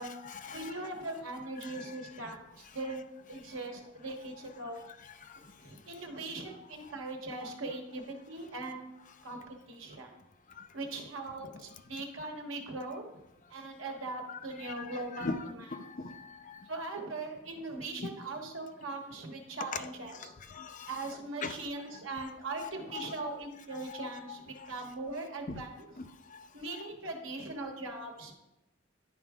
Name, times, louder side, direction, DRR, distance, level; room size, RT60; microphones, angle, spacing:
voice 1, 0.0-0.7 1.6-1.9 5.3-5.4 7.4-7.5 10.6-10.7 14.3-16.2 16.5-16.6 18.0-18.1 19.6-19.9 20.5-21.1 21.4-21.6 22.6-23.4 23.7-24.4 25.5-25.6 26.0-26.1 26.7-26.8, left 4 dB, 40° left, 8 dB, 0.5 m, -41 dB
voice 2, 0.5-4.8 5.6-8.9 9.2-10.2 10.7-13.0 13.5-15.3 16.7-20.3 20.9-25.9 26.5-28.3, right 2 dB, 90° right, 3 dB, 1.3 m, -40 dB
11.0 x 4.7 x 3.6 m, 0.92 s
head